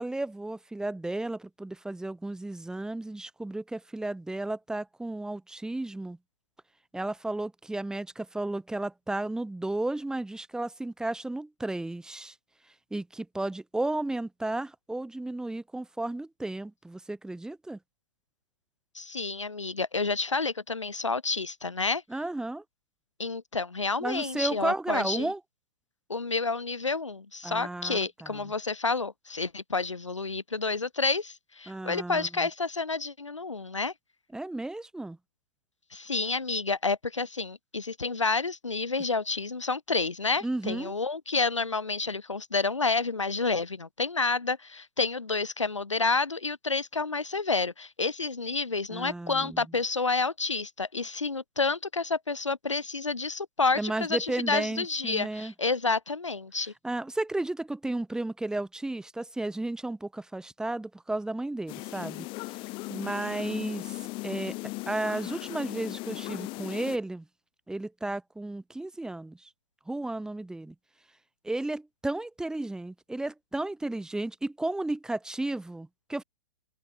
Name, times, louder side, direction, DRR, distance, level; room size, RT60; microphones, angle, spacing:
voice 1, 0.0-6.2 6.9-12.3 12.9-17.8 22.1-22.6 24.0-25.4 27.4-28.5 31.7-32.5 34.3-35.2 40.4-40.9 48.9-49.6 53.7-55.5 56.8-62.3 62.9-64.6 64.9-67.2 67.7-69.5 69.9-70.7 71.4-76.2, right 2 dB, 5° right, 5.0 m, -33 dB
voice 2, 19.0-22.0 23.2-25.3 26.1-33.9 35.9-56.7, left 4 dB, 85° left, 2.1 m, -29 dB
sound 1, 61.7-67.0, left 23 dB, 35° left, 5.7 m, -37 dB
figure-of-eight pair, 115°, 15 cm